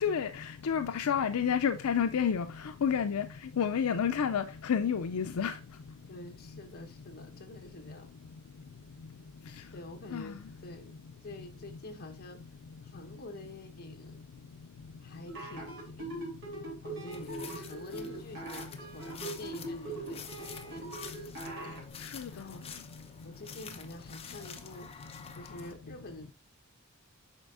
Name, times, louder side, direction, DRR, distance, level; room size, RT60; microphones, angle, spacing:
voice 1, 0.0-2.5 2.8-3.3 3.6-5.5 10.1-10.3 22.1-22.4, left 7 dB, 80° left, 0.5 m, -29 dB
voice 2, 6.1-8.1 9.7-10.4 10.6-10.9 11.2-12.4 12.8-14.2 15.0-16.1 16.8-20.9 21.6-21.9 22.3-22.6 23.2-25.0 25.3-26.3, left 1 dB, 45° left, 1.2 m, -47 dB
sound 1, 15.3-21.8, right 2 dB, 60° right, 3.1 m, -41 dB
sound 2, 17.1-25.7, left 6 dB, 25° left, 0.7 m, -48 dB
8.1 x 5.5 x 2.5 m
head